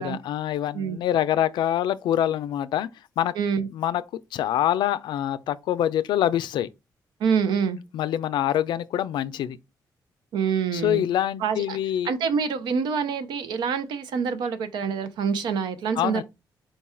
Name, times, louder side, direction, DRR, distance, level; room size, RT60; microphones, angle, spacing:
voice 1, 0.0-2.9 3.2-3.3 3.7-4.0 4.3-6.7 7.9-9.6 10.7-12.1 16.0-16.2, left 11 dB, 85° left, 0.4 m, -25 dB
voice 2, 3.4-3.7 7.2-7.8 10.3-11.0 11.4-11.8 12.0-16.2, right 6 dB, 90° right, 0.6 m, -26 dB
4.5 x 2.3 x 4.2 m
cardioid pair, 105°, 8 cm